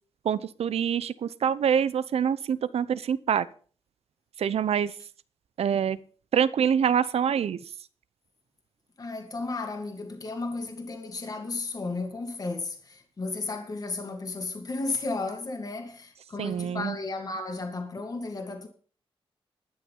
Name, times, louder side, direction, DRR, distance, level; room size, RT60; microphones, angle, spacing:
voice 1, 0.2-3.4 4.4-4.9 5.6-6.0 6.3-7.6 16.4-16.9, right 8 dB, 85° right, 0.7 m, -25 dB
voice 2, 9.0-18.7, left 3 dB, 40° left, 2.1 m, -34 dB
12.0 x 9.5 x 5.5 m
wide cardioid pair, 135°, 10 cm